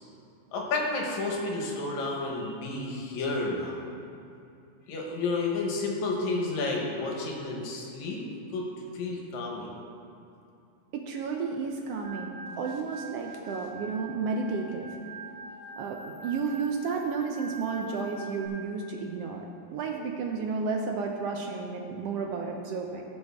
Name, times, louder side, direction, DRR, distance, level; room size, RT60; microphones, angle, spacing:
voice 1, 0.5-3.8 4.9-8.2 8.5-8.7 8.9-9.7, left 3 dB, 80° left, -1 dB, 2.5 m, -31 dB
voice 2, 10.9-14.9 15.8-19.4 19.7-23.0, right 4 dB, 75° right, 2 dB, 1.5 m, -32 dB
Organ, 12.0-18.5, right 2 dB, 15° right, 2.0 m, -44 dB
15.5 x 6.5 x 3.6 m, 2.6 s
omnidirectional pair, 3.3 m